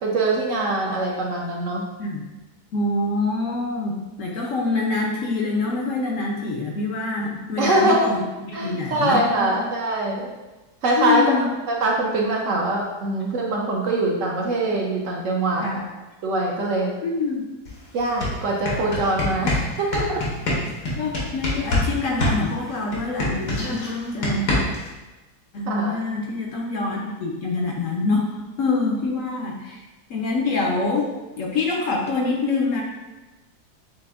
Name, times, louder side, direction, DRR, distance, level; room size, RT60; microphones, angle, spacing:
voice 1, 0.0-1.9 7.6-8.1 8.5-10.3 10.8-11.2 11.7-15.7 16.2-16.9 17.9-20.2 25.7-26.0, right 2 dB, 65° right, -2 dB, 0.9 m, -23 dB
voice 2, 2.7-9.6 11.0-11.5 15.6-15.8 17.0-17.4 21.0-24.5 25.5-29.8 30.1-31.1 31.4-32.8, left 3 dB, 65° left, -1 dB, 0.9 m, -25 dB
sound 1, 17.7-17.8 18.0-21.9 22.2-24.9, left 2 dB, 90° left, 1.6 m, -24 dB
7.5 x 2.5 x 2.4 m, 1.1 s
omnidirectional pair, 1.7 m